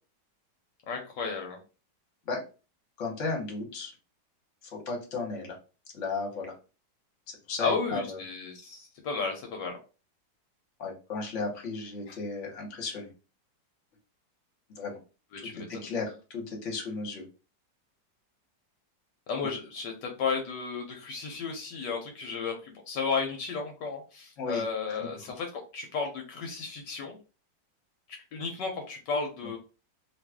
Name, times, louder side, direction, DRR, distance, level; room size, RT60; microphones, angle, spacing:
voice 1, 0.9-1.6 7.6-9.8 12.1-12.2 15.3-15.9 19.3-27.2 28.3-29.6, left 5 dB, 75° left, 2 dB, 1.3 m, -33 dB
voice 2, 3.0-3.9 4.7-5.6 5.9-6.5 7.3-8.2 10.8-13.1 14.7-15.0 15.7-17.2 19.4-19.5 24.4-24.6 24.9-25.1, left 3 dB, 45° left, 0 dB, 1.2 m, -34 dB
2.9 x 2.4 x 3.4 m, 0.33 s
omnidirectional pair, 2.0 m